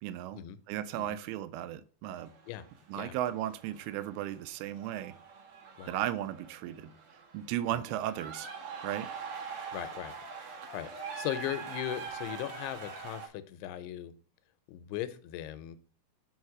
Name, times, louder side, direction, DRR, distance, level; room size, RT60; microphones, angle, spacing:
voice 1, 0.0-0.4 0.7-2.3 2.9-5.2 5.9-6.9 7.3-8.5 8.8-9.1, right 12 dB, 80° right, 2.4 m, -35 dB
sound 1, 2.2-13.3, right 5 dB, 65° right, 1.4 m, -44 dB
voice 2, 9.7-10.1 10.4-14.1 14.7-15.8, left 13 dB, 90° left, 2.7 m, -38 dB
6.5 x 4.9 x 4.7 m
omnidirectional pair, 4.6 m